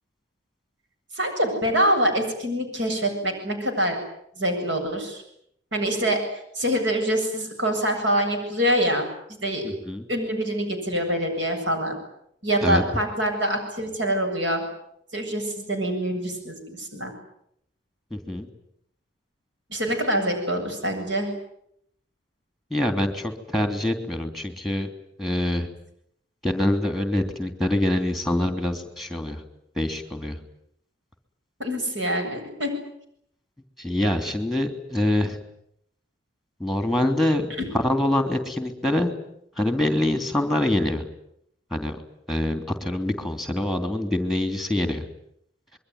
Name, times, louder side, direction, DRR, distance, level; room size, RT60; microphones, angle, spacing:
voice 1, 1.1-4.0 4.4-5.2 5.7-6.2 6.5-9.0 9.4-9.6 10.1-11.9 12.4-14.6 15.1-17.1 19.7-21.3 31.6-32.7, equal, 80° right, 4 dB, 7.9 m, -25 dB
voice 2, 9.6-10.1 12.6-12.8 18.1-18.5 22.7-24.9 25.2-25.7 26.4-29.4 29.8-30.4 33.8-35.4 36.6-37.5 37.8-39.1 39.6-41.0 41.7-42.0 42.3-45.0, left 1 dB, ahead, 7 dB, 3.0 m, -25 dB
25.5 x 23.0 x 9.5 m, 0.73 s
head